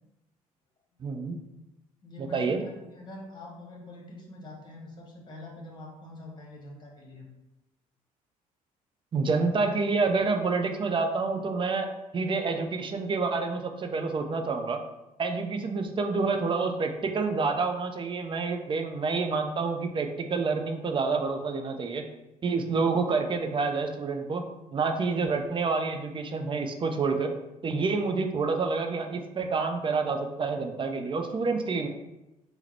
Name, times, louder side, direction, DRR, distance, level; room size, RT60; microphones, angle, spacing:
voice 1, 1.0-1.4 2.2-2.6 9.1-14.8 15.2-22.0 22.4-27.3 27.6-31.9, right 4 dB, 25° right, 5 dB, 0.5 m, -28 dB
voice 2, 2.0-7.2, left 2 dB, 25° left, -1 dB, 1.1 m, -45 dB
3.8 x 2.1 x 4.3 m, 0.98 s
figure-of-eight pair, 50°, 18 cm